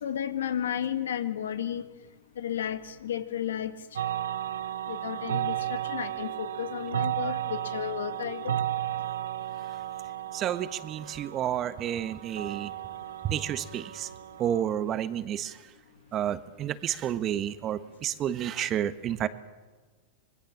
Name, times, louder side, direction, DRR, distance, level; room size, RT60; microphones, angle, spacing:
voice 1, 0.0-1.8 2.4-3.7 4.9-8.5, left 9 dB, 85° left, 10 dB, 1.8 m, -33 dB
sound 1, 4.0-14.6, right 11 dB, 90° right, 1.0 m, -34 dB
voice 2, 10.3-12.7 13.2-14.1 14.4-15.6 16.1-19.3, right 10 dB, 35° right, 13 dB, 1.4 m, -30 dB
25.5 x 20.5 x 7.4 m, 1.3 s
hypercardioid pair, 110°, 0 cm